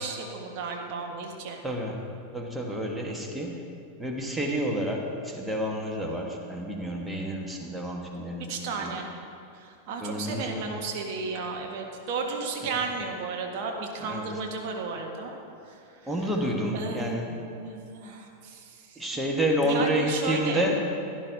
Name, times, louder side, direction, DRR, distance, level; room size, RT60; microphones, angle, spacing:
voice 1, 0.0-1.6 8.4-9.1 9.5-15.4 15.6-16.1 16.7-19.0 19.6-20.7, right 4 dB, 45° right, 1 dB, 1.5 m, -34 dB
voice 2, 1.6-2.1 2.3-3.6 4.0-8.9 10.0-10.7 12.6-12.7 14.0-14.3 16.1-17.4 19.0-20.8, equal, 5° right, 0 dB, 1.4 m, -29 dB
16.5 x 11.0 x 2.8 m, 2.5 s
figure-of-eight pair, 90°, 0 cm